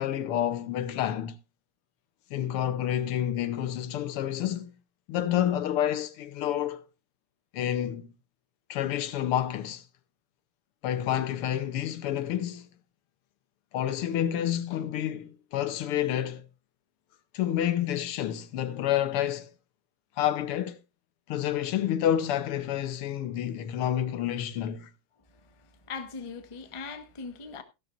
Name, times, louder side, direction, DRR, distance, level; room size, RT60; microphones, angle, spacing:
voice 1, 0.0-1.4 2.3-4.7 5.1-6.9 7.5-8.1 8.7-9.8 10.8-12.7 13.7-16.5 17.3-19.5 20.2-20.8 21.3-24.9, left 11 dB, 85° left, 1.8 m, -29 dB
voice 2, 25.3-27.6, left 4 dB, 30° left, 0.6 m, -40 dB
15.5 x 12.0 x 2.5 m
omnidirectional pair, 2.4 m